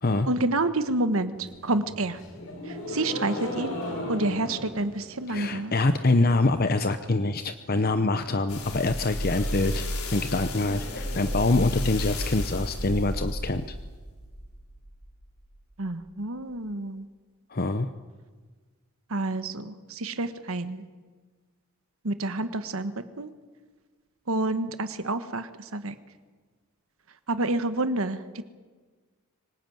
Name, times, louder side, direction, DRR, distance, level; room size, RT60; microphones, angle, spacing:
voice 1, 0.3-2.2 2.7-3.8 4.1-5.8 15.8-17.1 19.1-20.8 22.0-23.3 24.3-25.9 27.3-28.4, right 2 dB, 70° right, 11 dB, 1.3 m, -29 dB
sound 1, 1.3-6.4 6.7-7.2 7.5-7.6 7.9-8.0 8.3-12.3, left 1 dB, 60° left, 5.4 m, -39 dB
voice 2, 5.3-9.8 10.1-13.7 17.5-17.9, left 2 dB, 45° left, 10 dB, 0.8 m, -25 dB
sound 2, 8.5-15.0 15.5-15.6, left 1 dB, 80° left, 4.3 m, -32 dB
25.0 x 18.5 x 9.2 m, 1.4 s
head